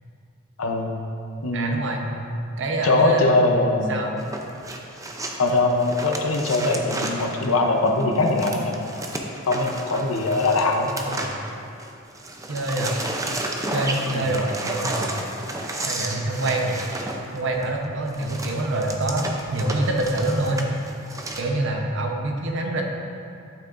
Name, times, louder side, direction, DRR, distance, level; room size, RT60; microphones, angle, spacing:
voice 1, 0.6-0.9 1.4-1.9 2.8-4.0 5.4-8.8 9.5-10.9 14.1-14.3, left 2 dB, 85° left, 2 dB, 0.8 m, -21 dB
voice 2, 1.5-2.1 2.6-3.5 3.9-4.2 10.8-11.4 12.5-13.0 13.7-15.2 15.8-16.8 17.3-20.6 21.4-22.8, right 1 dB, 60° right, 1 dB, 0.9 m, -26 dB
sound 1, 4.2-11.9 12.1-21.4, right 1 dB, 15° right, 0.6 m, -32 dB
11.5 x 6.1 x 2.6 m, 2.5 s
head